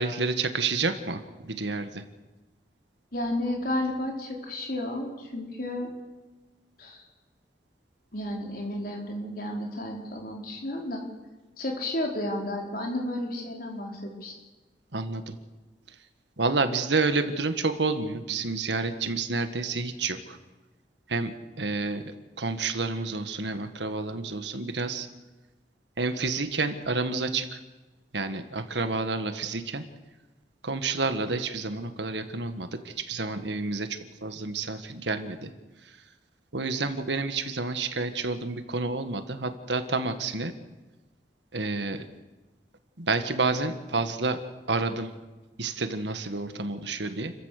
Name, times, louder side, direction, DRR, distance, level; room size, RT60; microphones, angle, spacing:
voice 1, 0.0-2.0 14.9-15.4 16.4-20.4 21.1-21.3 21.6-22.0 22.4-25.1 26.0-27.6 28.1-29.8 30.6-35.5 36.5-40.5 41.5-42.0 43.0-44.4 44.7-45.1 45.6-47.3, right 3 dB, 85° right, 8 dB, 1.8 m, -29 dB
voice 2, 3.1-5.9 6.8-7.0 8.1-11.0 11.6-14.3, left 1 dB, 55° left, 0 dB, 4.8 m, -32 dB
29.5 x 15.0 x 6.7 m, 1.2 s
head